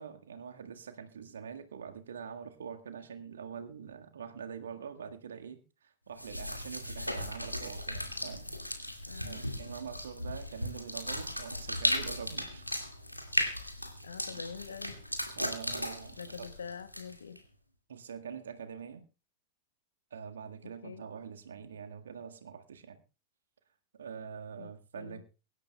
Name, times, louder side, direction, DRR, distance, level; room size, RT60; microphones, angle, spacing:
voice 1, 0.0-9.0 9.2-12.6 14.3-14.4 15.3-16.5 17.9-19.0 20.1-23.0 24.0-25.2, right 7 dB, 65° right, 6 dB, 1.6 m, -44 dB
sound 1, 6.2-17.4, left 1 dB, 90° left, 2.1 m, -36 dB
voice 2, 9.1-9.4 14.0-15.0 16.2-17.4 20.8-21.0 24.6-25.2, left 6 dB, 70° left, 10 dB, 1.3 m, -45 dB
23.5 x 12.0 x 2.3 m, 0.32 s
figure-of-eight pair, 90°, 0 cm